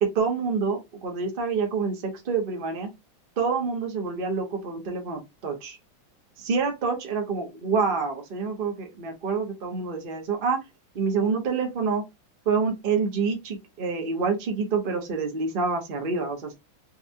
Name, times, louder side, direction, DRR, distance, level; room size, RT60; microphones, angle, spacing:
voice 1, 0.0-2.9 3.4-5.8 6.4-10.6 10.9-12.0 12.5-16.5, right 5 dB, 50° right, 0.6 m, -27 dB
4.1 x 2.2 x 2.6 m
omnidirectional pair, 2.3 m